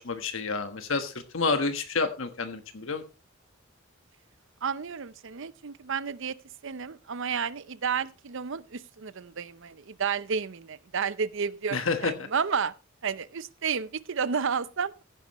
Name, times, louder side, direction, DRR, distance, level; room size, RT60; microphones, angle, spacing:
voice 1, 0.0-3.0 11.7-12.1, left 4 dB, 65° left, 1.3 m, -29 dB
voice 2, 4.6-6.4 6.6-12.7 13.0-15.0, right 6 dB, 65° right, 0.7 m, -31 dB
15.5 x 10.0 x 3.1 m
head